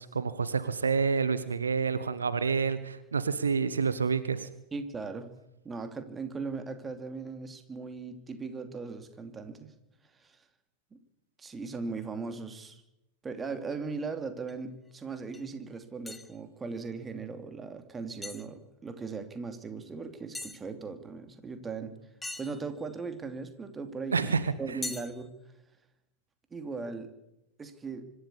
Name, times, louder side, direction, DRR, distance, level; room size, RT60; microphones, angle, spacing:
voice 1, 0.0-4.5 24.1-24.5, right 5 dB, 75° right, 14 dB, 1.1 m, -28 dB
voice 2, 4.7-5.3 5.6-9.7 10.2-10.4 10.9-11.0 11.4-12.8 13.2-21.9 22.4-24.2 24.6-25.3 26.5-27.1 27.6-28.0, right 4 dB, 15° right, 8 dB, 2.7 m, -38 dB
sound 1, 14.5-14.6 15.3-15.4 16.1-16.4 18.2-18.5 20.3-20.6 22.2-23.0 24.8-25.3, left 2 dB, 5° left, 1.7 m, -40 dB
25.5 x 12.5 x 8.5 m, 0.90 s
figure-of-eight pair, 90°, 0 cm